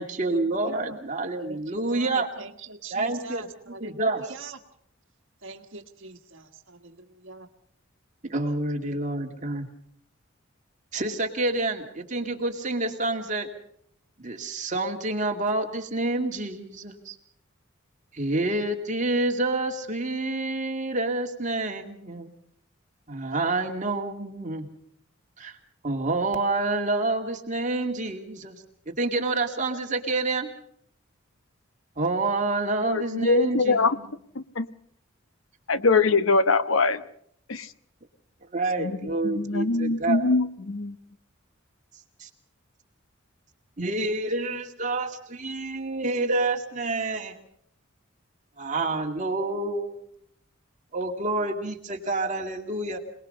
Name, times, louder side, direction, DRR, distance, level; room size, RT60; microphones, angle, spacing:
voice 1, 0.0-2.3 2.9-4.3 8.2-9.7 10.9-13.5 14.2-17.2 18.1-22.3 23.1-24.7 25.4-25.6 25.8-30.5 32.0-34.1 38.5-40.3 42.2-42.3 43.8-47.4 48.6-49.9 50.9-53.0, right 2 dB, 40° right, 2.3 m, -28 dB
voice 2, 0.7-1.0 1.4-4.6 5.4-6.9 7.2-7.5, right 3 dB, 65° right, 1.6 m, -42 dB
voice 3, 32.9-33.9 34.6-34.7 35.7-37.0 37.5-37.6 38.8-38.9 39.2-40.9, left 3 dB, 80° left, 1.0 m, -22 dB
27.0 x 19.5 x 5.5 m
head